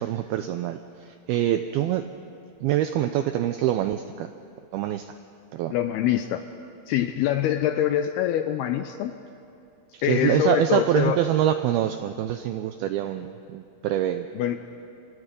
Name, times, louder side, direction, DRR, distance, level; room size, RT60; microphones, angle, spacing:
voice 1, 0.0-2.1 2.6-4.3 4.7-5.1 5.5-5.7 9.9-14.3, right 12 dB, 90° right, 8 dB, 2.2 m, -25 dB
voice 2, 5.7-6.5 6.9-9.1 10.0-11.2 14.3-14.6, left 11 dB, 80° left, 9 dB, 2.3 m, -24 dB
30.0 x 25.5 x 5.3 m, 2.6 s
omnidirectional pair, 5.2 m